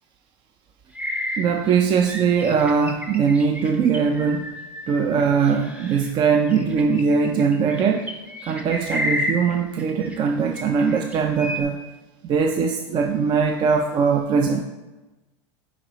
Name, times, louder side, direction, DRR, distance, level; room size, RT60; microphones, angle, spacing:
sound 1, 0.9-6.1 6.5-10.3 10.5-11.6, left 1 dB, 10° right, 0.7 m, -31 dB
voice 1, 1.4-4.5 4.9-8.1 8.4-11.8 12.2-14.6, right 6 dB, 30° right, 5 dB, 0.4 m, -21 dB
8.7 x 4.7 x 2.9 m, 1.1 s
supercardioid pair, 135°, 16 cm